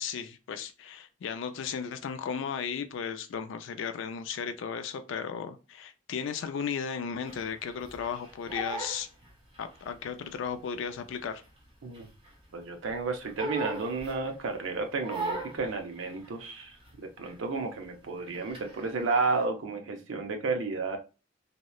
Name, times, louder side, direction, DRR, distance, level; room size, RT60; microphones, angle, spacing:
voice 1, 0.0-9.1 9.6-11.4, left 7 dB, 65° left, 0.3 m, -35 dB
Crying sobbing, 7.3-9.9 10.2-12.5 12.8-14.5 15.0-17.0 17.2-17.6 17.8-19.4, right 2 dB, 25° right, 0.8 m, -39 dB
voice 2, 12.5-16.7 17.0-21.0, right 3 dB, 65° right, 0.5 m, -32 dB
2.8 x 2.1 x 2.2 m
head